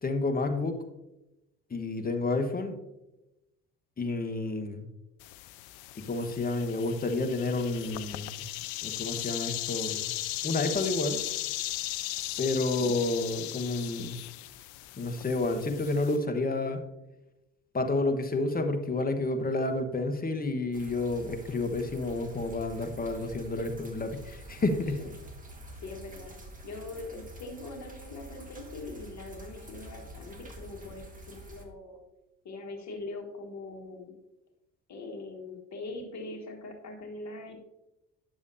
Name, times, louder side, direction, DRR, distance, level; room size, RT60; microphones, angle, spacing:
voice 1, 0.0-0.8 1.7-2.7 4.0-4.8 6.0-8.4 8.8-10.1 10.4-11.2 12.4-14.2 15.0-16.8 17.7-25.0, left 2 dB, 20° left, 7 dB, 1.2 m, -30 dB
sound 1, 5.2-16.2, left 15 dB, 65° left, 0.5 m, -37 dB
sound 2, 20.7-31.6, right 1 dB, 20° right, 1.6 m, -47 dB
voice 2, 25.7-26.4 26.6-32.0 32.4-34.1 34.9-37.6, left 2 dB, 45° left, 1 dB, 1.6 m, -42 dB
10.0 x 6.9 x 2.7 m, 0.94 s
hypercardioid pair, 65°, 39 cm